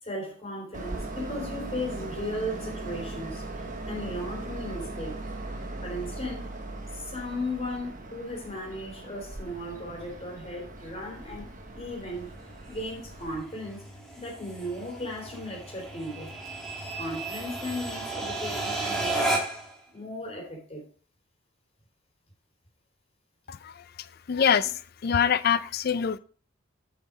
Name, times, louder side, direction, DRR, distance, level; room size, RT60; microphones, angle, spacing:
voice 1, 0.0-5.2 5.8-6.5 6.9-12.3 12.7-13.8 14.2-16.3 17.0-19.5 19.9-20.8, left 1 dB, 30° left, -2 dB, 3.4 m, -36 dB
Train, 0.7-13.4, right 2 dB, 40° right, 1.1 m, -39 dB
sound 1, 9.5-19.7, right 2 dB, ahead, 1.8 m, -35 dB
voice 2, 23.5-23.8 24.3-26.2, left 7 dB, 50° left, 15 dB, 0.4 m, -25 dB
7.1 x 5.8 x 4.8 m, 0.40 s
head